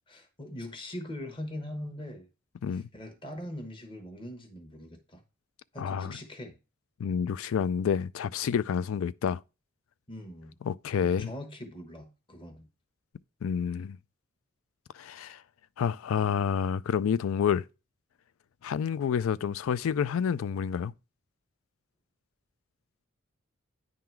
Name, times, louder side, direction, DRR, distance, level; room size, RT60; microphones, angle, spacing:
voice 1, 0.1-2.3 2.7-5.2 5.7-6.6 10.1-10.5 11.0-12.7, left 1 dB, 25° left, 1.0 m, -41 dB
voice 2, 5.8-6.1 7.0-9.4 10.6-11.3 13.4-14.0 14.9-15.4 15.8-17.6 18.6-20.9, left 7 dB, 80° left, 0.4 m, -29 dB
9.5 x 3.8 x 4.5 m
head